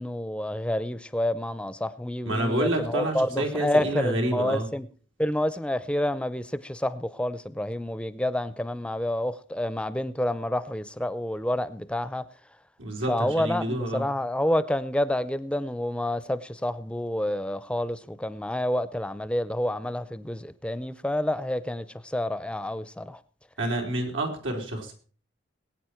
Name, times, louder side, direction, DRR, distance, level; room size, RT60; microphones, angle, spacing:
voice 1, 0.0-4.9 5.2-12.2 13.1-23.2, left 1 dB, 5° left, 0.6 m, -28 dB
voice 2, 2.3-4.7 12.8-14.0 23.6-24.9, right 1 dB, 85° right, 3.7 m, -28 dB
21.0 x 9.1 x 4.5 m
head